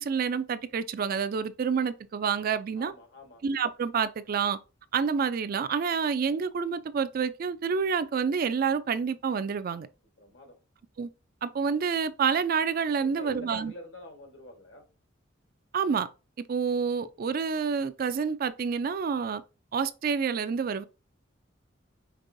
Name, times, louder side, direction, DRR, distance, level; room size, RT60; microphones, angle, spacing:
voice 1, 0.0-2.9 3.4-4.6 4.9-9.9 11.0-11.1 11.4-13.7 15.7-16.1 16.5-19.4 19.7-20.8, right 6 dB, 50° right, 0.3 m, -28 dB
voice 2, 2.8-3.4 10.2-10.6 12.9-14.9, left 2 dB, 65° left, 1.3 m, -46 dB
5.3 x 3.4 x 2.6 m
head